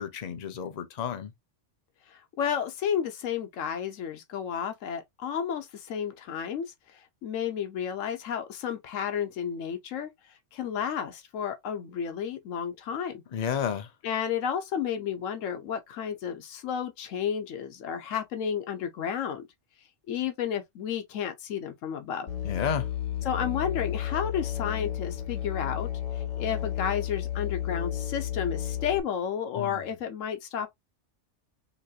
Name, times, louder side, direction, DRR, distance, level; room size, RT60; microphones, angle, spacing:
voice 1, 0.0-1.3 13.3-13.9 22.4-22.9 29.6-29.8, left 7 dB, 40° left, 0.7 m, -31 dB
voice 2, 2.1-13.2 14.0-19.5 20.1-22.3 23.2-25.9 26.1-30.7, left 8 dB, 90° left, 1.1 m, -32 dB
Musical instrument, 22.3-29.0, left 11 dB, 75° left, 1.4 m, -32 dB
3.9 x 3.1 x 2.4 m
omnidirectional pair, 1.3 m